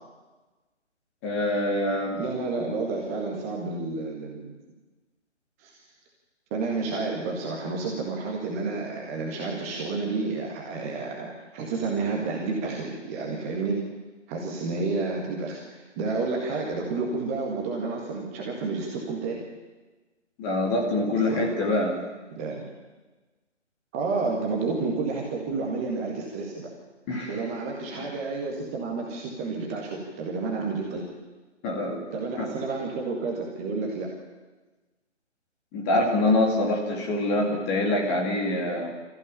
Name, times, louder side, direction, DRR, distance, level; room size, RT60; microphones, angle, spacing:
voice 1, 1.2-2.2 20.4-22.0 27.1-27.3 31.6-32.0 32.4-32.5 35.7-38.9, left 2 dB, 10° left, -1 dB, 2.2 m, -25 dB
voice 2, 2.2-4.6 5.6-5.7 6.5-13.8 14.3-19.4 21.3-21.5 22.4-22.7 23.9-26.7 27.3-31.0 32.1-34.1, right 3 dB, 10° right, -2 dB, 1.7 m, -30 dB
26.0 x 15.0 x 8.9 m, 1.2 s
figure-of-eight pair, 150°, 36 cm